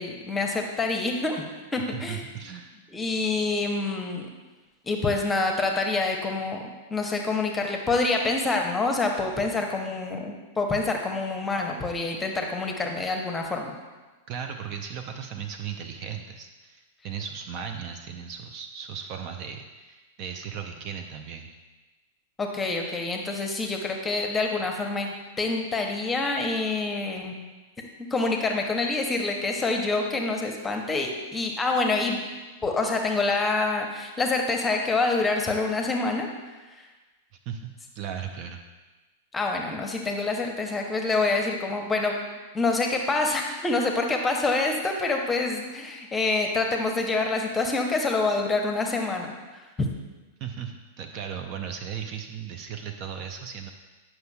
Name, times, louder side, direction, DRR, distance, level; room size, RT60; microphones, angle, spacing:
voice 1, 0.0-1.4 1.7-2.2 2.9-4.3 4.9-6.6 6.9-13.8 22.4-27.4 27.8-32.2 32.6-36.3 39.3-42.2 42.5-49.3, left 3 dB, 15° left, 2 dB, 0.8 m, -26 dB
voice 2, 1.9-2.7 14.3-21.5 37.5-38.6 50.4-53.7, right 7 dB, 40° right, 5 dB, 0.5 m, -36 dB
9.1 x 5.8 x 2.3 m, 1.2 s
figure-of-eight pair, 95°, 0 cm